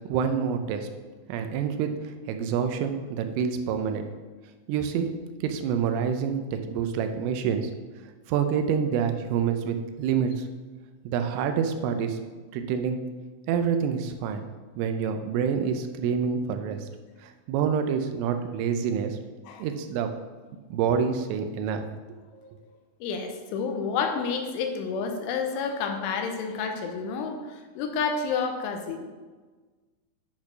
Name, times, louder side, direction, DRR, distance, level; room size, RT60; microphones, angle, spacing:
voice 1, 0.1-0.9 1.3-1.9 2.3-4.1 4.7-5.1 5.4-7.7 8.3-10.3 11.1-12.2 12.5-13.0 13.5-14.4 14.8-16.8 17.5-19.2 19.6-20.1 20.7-21.8, right 7 dB, 90° right, 7 dB, 3.3 m, -27 dB
voice 2, 23.0-29.1, left 5 dB, 85° left, 5 dB, 3.2 m, -30 dB
10.0 x 4.4 x 5.9 m, 1.3 s
omnidirectional pair, 5.7 m